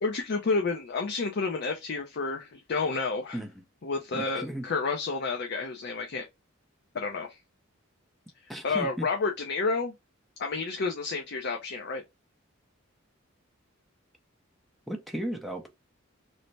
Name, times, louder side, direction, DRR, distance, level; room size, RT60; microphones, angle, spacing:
voice 1, 0.0-3.4 3.8-6.3 6.9-7.4 8.6-9.9 10.4-12.0, left 4 dB, 55° left, 0.5 m, -30 dB
voice 2, 4.1-4.7 8.5-9.1 14.9-15.7, equal, ahead, 0.6 m, -35 dB
3.2 x 2.1 x 4.0 m
head